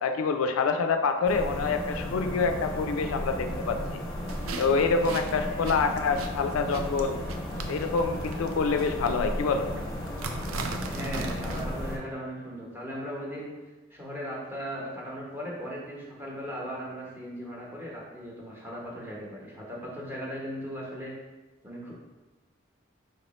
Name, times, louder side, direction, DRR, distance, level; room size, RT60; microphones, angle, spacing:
voice 1, 0.0-3.8 4.6-7.2 7.7-9.7, left 4 dB, 85° left, 7 dB, 0.4 m, -26 dB
sound 1, 1.2-12.0, left 1 dB, 25° left, 0.8 m, -34 dB
sound 2, 4.3-11.6, right 4 dB, 80° right, 0.4 m, -40 dB
voice 2, 10.8-13.5 13.9-21.1 21.6-21.9, equal, 10° right, -5 dB, 0.9 m, -38 dB
4.9 x 3.1 x 3.0 m, 1.2 s
head